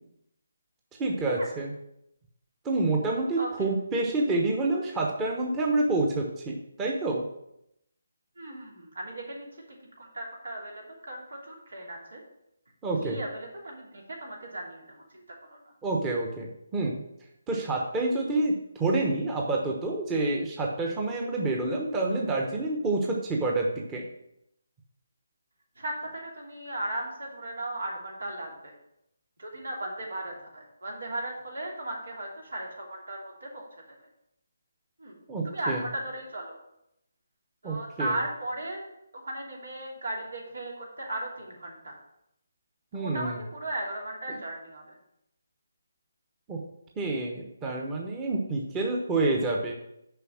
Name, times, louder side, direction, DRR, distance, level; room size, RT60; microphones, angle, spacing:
voice 1, 1.0-1.7 2.6-7.3 12.8-13.2 15.8-17.0 17.5-24.0 35.3-35.8 37.6-38.1 42.9-43.4 46.5-46.6 47.0-49.7, right 2 dB, 15° right, -1 dB, 1.0 m, -28 dB
voice 2, 3.4-3.7 8.4-9.5 10.0-12.2 13.0-15.2 15.5-15.6 25.8-28.7 29.4-33.7 35.0-35.2 35.4-36.6 37.6-38.8 39.1-42.0 42.9-45.0, right 1 dB, 80° right, -1 dB, 2.9 m, -36 dB
6.8 x 5.2 x 6.3 m, 0.81 s
figure-of-eight pair, 155°, 0 cm